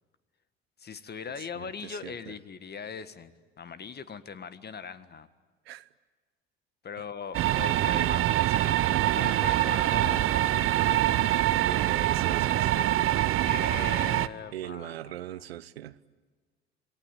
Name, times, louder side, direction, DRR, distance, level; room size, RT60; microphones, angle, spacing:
voice 1, 0.8-5.3 6.8-8.4 9.1-10.7 13.4-15.4, left 6 dB, 30° left, 1.7 m, -40 dB
voice 2, 1.4-2.3 5.6-5.9 7.0-7.1 7.7-8.8 11.6-13.1 14.5-16.0, right 13 dB, 75° right, 0.8 m, -40 dB
sound 1, 7.3-14.3, right 14 dB, 45° right, 0.9 m, -25 dB
28.0 x 22.0 x 9.7 m
figure-of-eight pair, 60°, 31 cm